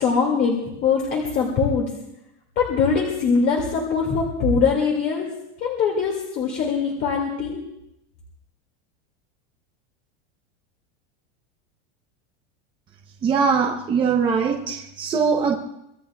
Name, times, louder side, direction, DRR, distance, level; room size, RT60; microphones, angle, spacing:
voice 1, 0.0-1.8 2.6-5.3 5.6-7.6, left 5 dB, 30° left, -1 dB, 2.2 m, -22 dB
voice 2, 13.2-15.6, right 5 dB, 15° right, 0 dB, 0.7 m, -21 dB
24.5 x 19.0 x 2.3 m, 0.84 s
supercardioid pair, 175°, 32 cm